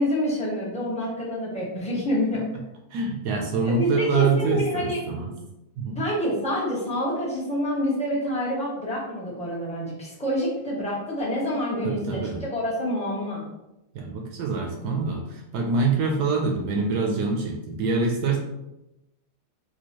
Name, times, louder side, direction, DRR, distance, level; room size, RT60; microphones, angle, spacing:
voice 1, 0.0-2.5 3.8-5.1 5.9-13.4, equal, 5° left, -7 dB, 0.7 m, -27 dB
voice 2, 2.9-5.3 5.8-6.0 11.8-12.4 13.9-18.4, right 4 dB, 70° right, 1 dB, 1.1 m, -25 dB
4.4 x 2.3 x 2.9 m, 0.92 s
omnidirectional pair, 2.0 m